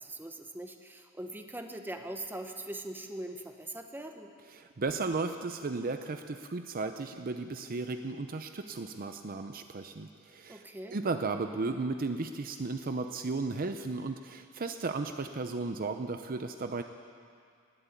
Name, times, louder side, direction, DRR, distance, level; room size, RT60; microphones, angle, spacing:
voice 1, 0.0-4.3 10.5-11.0, right 1 dB, 10° right, 5 dB, 1.0 m, -41 dB
voice 2, 4.5-10.6 10.9-16.8, right 3 dB, 45° right, 7 dB, 0.6 m, -35 dB
18.5 x 8.2 x 9.1 m, 2.3 s
head